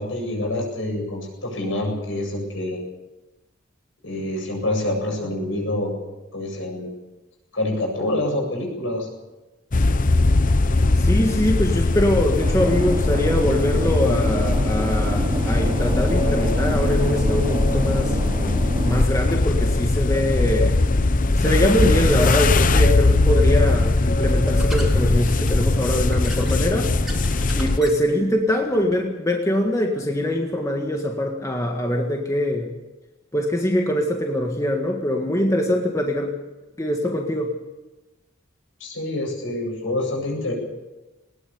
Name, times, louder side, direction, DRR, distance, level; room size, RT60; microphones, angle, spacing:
voice 1, 0.0-2.8 4.0-5.9 6.3-6.9 7.5-9.1 38.8-40.5, left 1 dB, 75° left, 1 dB, 8.0 m, -26 dB
sound 1, 9.7-27.8, left 2 dB, 40° left, 0.8 m, -20 dB
voice 2, 11.0-18.2 18.8-20.8 21.4-26.9 27.5-32.7 33.3-36.3 36.8-37.5, left 1 dB, 15° left, 1 dB, 1.8 m, -23 dB
sound 2, 12.4-19.0, right 1 dB, 25° right, 1.0 m, -29 dB
sound 3, 22.1-29.0, right 1 dB, ahead, 3.6 m, -42 dB
20.0 x 20.0 x 7.1 m, 1.1 s
head